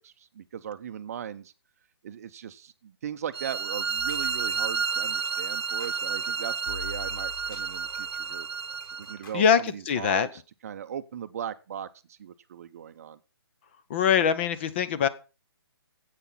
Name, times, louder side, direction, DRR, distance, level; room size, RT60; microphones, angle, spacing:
voice 1, 0.0-1.5 2.0-8.5 9.0-13.2, right 9 dB, 35° right, 12 dB, 0.7 m, -38 dB
sound 1, 3.3-9.2, right 5 dB, 85° right, 1.0 m, -31 dB
sound 2, 4.0-9.9, left 5 dB, 55° left, 4.3 m, -46 dB
voice 2, 9.3-10.3 13.9-15.1, left 7 dB, 30° left, 14 dB, 0.7 m, -23 dB
10.0 x 8.3 x 5.8 m, 0.32 s
hypercardioid pair, 160°, 13 cm